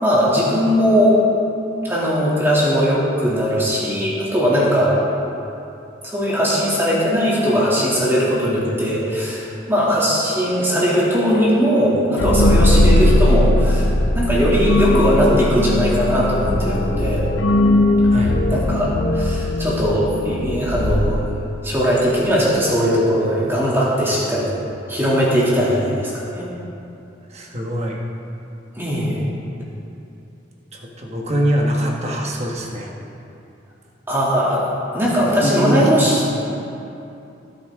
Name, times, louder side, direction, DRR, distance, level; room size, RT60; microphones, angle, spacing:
voice 1, 0.0-1.2 1.8-5.0 6.0-17.3 18.5-21.3 21.6-24.5 24.9-26.5 28.7-29.2 34.1-34.6 34.9-36.2, equal, 10° right, -7 dB, 2.6 m, -19 dB
sound 1, 12.2-21.8, left 1 dB, 90° left, 0.9 m, -18 dB
voice 2, 27.3-28.0 30.7-32.9 35.4-36.2, equal, 35° right, -1 dB, 1.4 m, -23 dB
18.5 x 8.5 x 3.7 m, 2.8 s
head